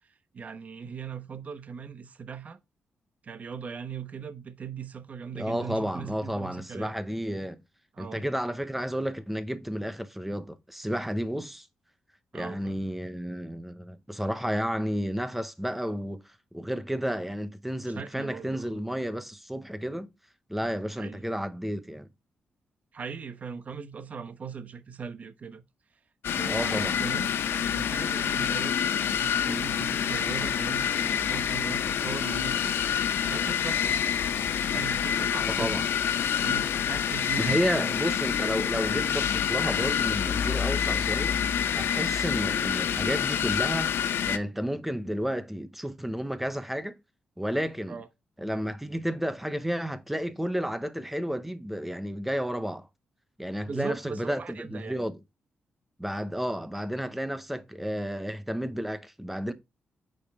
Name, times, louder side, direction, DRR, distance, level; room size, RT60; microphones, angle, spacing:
voice 1, 0.0-2.6 3.2-6.9 7.9-8.2 12.3-12.8 17.8-18.8 21.0-21.3 22.9-25.6 26.4-27.3 27.7-32.8 33.3-34.0 34.7-35.8 36.3-38.0 40.4-40.6 47.9-48.1 53.7-55.0, right 6 dB, 40° right, 1.0 m, -39 dB
voice 2, 5.3-7.6 8.0-11.7 12.3-20.1 20.5-22.1 26.5-27.0 35.4-35.9 37.4-41.4 41.8-43.9 44.3-46.9 47.4-48.0 48.4-52.9 53.4-55.2 56.0-59.5, equal, 5° right, 0.8 m, -32 dB
sound 1, 26.2-44.4, left 8 dB, 85° left, 0.8 m, -27 dB
9.0 x 5.3 x 3.6 m
wide cardioid pair, 155°, 4 cm